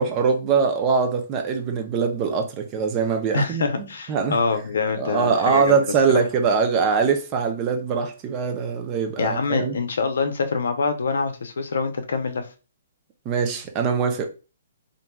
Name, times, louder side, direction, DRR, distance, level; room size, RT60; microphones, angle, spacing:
voice 1, 0.0-3.7 4.1-4.4 5.0-9.8 13.3-14.3, right 5 dB, 25° right, 0.5 m, -22 dB
voice 2, 3.3-5.8 9.2-12.5, left 4 dB, 80° left, 0.5 m, -25 dB
3.0 x 2.5 x 2.2 m
hypercardioid pair, 155°, 0 cm